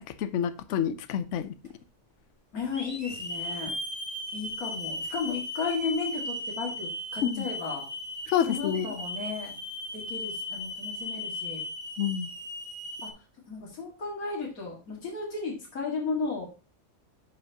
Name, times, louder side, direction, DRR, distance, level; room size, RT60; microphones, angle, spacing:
voice 1, 0.2-1.5 7.2-7.5 8.3-9.0 12.0-12.3, left 9 dB, 60° left, 0.9 m, -28 dB
Hiss / Alarm, 1.6-1.7 2.7-13.1, left 1 dB, 20° left, 1.5 m, -36 dB
voice 2, 2.5-3.7 4.3-7.9 8.5-9.6 9.9-11.6 13.0-13.1 13.5-16.5, left 4 dB, 80° left, 2.6 m, -34 dB
10.5 x 5.7 x 2.9 m
omnidirectional pair, 1.5 m